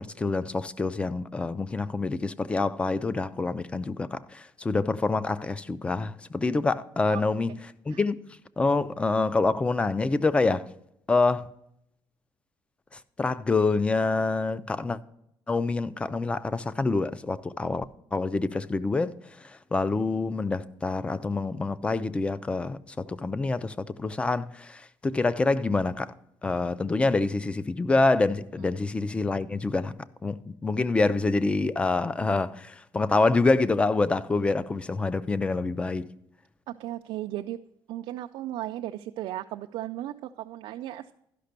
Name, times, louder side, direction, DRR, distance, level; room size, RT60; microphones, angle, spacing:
voice 1, 0.0-7.5 7.9-8.2 8.6-10.7 11.1-11.5 13.2-15.0 15.5-17.9 18.1-19.1 19.4-26.1 26.4-29.9 30.2-36.1, left 3 dB, 15° left, 0.3 m, -26 dB
voice 2, 36.7-37.6 37.9-41.1, right 13 dB, 90° right, 0.4 m, -36 dB
11.5 x 5.8 x 6.6 m
cardioid pair, 175°, 9 cm